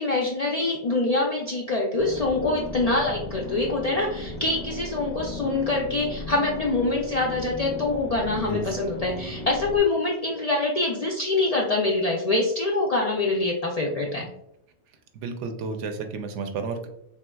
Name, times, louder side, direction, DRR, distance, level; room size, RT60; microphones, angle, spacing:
voice 1, 0.0-14.2, left 2 dB, 60° left, -2 dB, 0.4 m, -25 dB
sound 1, 2.0-9.8, left 2 dB, 30° left, 0.7 m, -36 dB
voice 2, 8.4-8.8 15.1-16.9, right 4 dB, 85° right, 6 dB, 0.9 m, -32 dB
3.4 x 2.8 x 2.2 m, 0.79 s
omnidirectional pair, 1.2 m